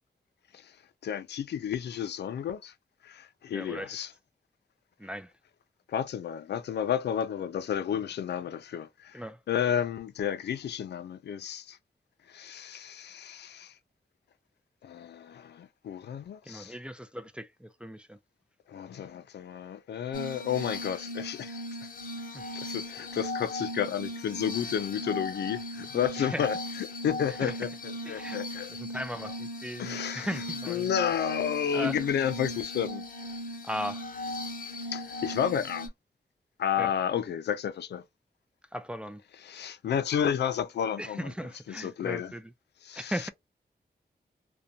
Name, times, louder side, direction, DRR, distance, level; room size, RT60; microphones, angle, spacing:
voice 1, 1.0-2.7 3.0-4.1 5.9-9.2 9.5-11.8 12.3-13.7 14.8-16.7 18.7-21.5 22.5-26.6 27.0-28.7 29.8-30.3 30.7-33.0 34.9-35.9 36.6-38.0 39.4-41.3 41.7-42.3 42.8-43.3, left 8 dB, 90° left, 0.4 m, -31 dB
voice 2, 3.5-4.0 5.0-5.3 9.1-9.4 16.4-18.2 22.3-22.5 26.2-26.5 27.4-27.5 28.0-28.4 28.7-30.9 31.7-32.0 33.6-34.0 36.8-36.9 38.7-39.2 41.0-42.5 42.9-43.3, equal, 5° right, 0.3 m, -37 dB
Glass, 20.1-35.9, left 1 dB, 55° left, 0.8 m, -38 dB
2.5 x 2.1 x 2.7 m
cardioid pair, 70°, 17 cm